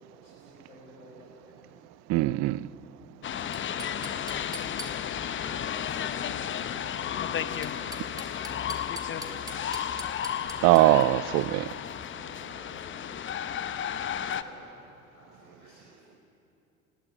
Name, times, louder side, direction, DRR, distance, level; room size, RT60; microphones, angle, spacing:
voice 1, 0.2-1.8 6.6-11.2 12.0-13.8 14.1-16.2, left 1 dB, 80° left, 4.9 m, -53 dB
voice 2, 2.1-2.6 10.6-11.7, right 18 dB, 40° right, 0.5 m, -21 dB
sound 1, 3.2-14.4, left 9 dB, 25° left, 0.8 m, -33 dB
sound 2, 3.5-5.3 7.4-11.0, right 2 dB, 10° right, 2.7 m, -43 dB
18.5 x 17.5 x 9.4 m
figure-of-eight pair, 70°, 44 cm